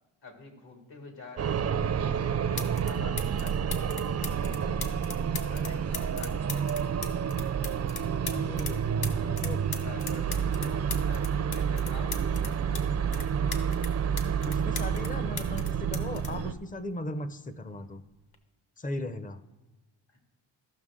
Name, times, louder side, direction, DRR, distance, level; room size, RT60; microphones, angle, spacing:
voice 1, 0.2-1.8 2.2-5.2 5.5-7.0 9.1-9.4 9.8-13.8, left 3 dB, 70° left, 2 dB, 2.3 m, -48 dB
sound 1, 1.4-16.5, right 7 dB, 35° right, 0.4 m, -29 dB
sound 2, 2.1-2.2 2.6-2.9 3.2-8.7 9.0-12.8 13.1-15.1 15.4-17.2 18.1-18.4, left 5 dB, 55° left, 1.1 m, -39 dB
voice 2, 8.3-8.9 9.3-9.6 14.4-18.0 18.8-19.4, left 1 dB, 20° left, 12 dB, 0.5 m, -37 dB
14.5 x 5.9 x 3.7 m, 1.1 s
cardioid pair, 105°, 45 cm